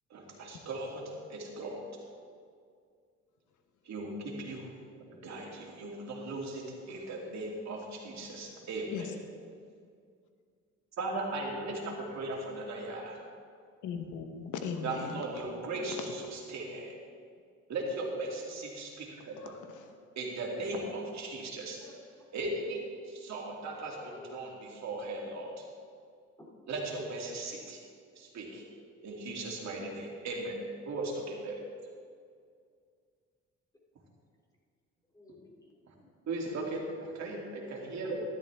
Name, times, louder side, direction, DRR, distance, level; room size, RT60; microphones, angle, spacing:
voice 1, 0.1-1.0 1.3-1.8 3.9-4.7 5.1-9.1 11.0-13.2 14.8-17.0 17.7-19.6 20.2-21.8 22.3-22.8 23.1-25.7 26.7-27.8 28.2-28.6 29.0-30.6 30.8-31.6 36.3-38.2, right 2 dB, 65° right, -1 dB, 2.6 m, -38 dB
voice 2, 13.8-15.2 16.0-16.1 19.3-20.0, left 6 dB, 85° left, 6 dB, 1.2 m, -39 dB
voice 3, 21.8-22.3 24.0-24.3 26.4-26.6 35.1-36.1 37.2-37.5, left 2 dB, 10° left, -2 dB, 2.6 m, -53 dB
13.0 x 11.5 x 3.5 m, 2.2 s
cardioid pair, 90°, 30 cm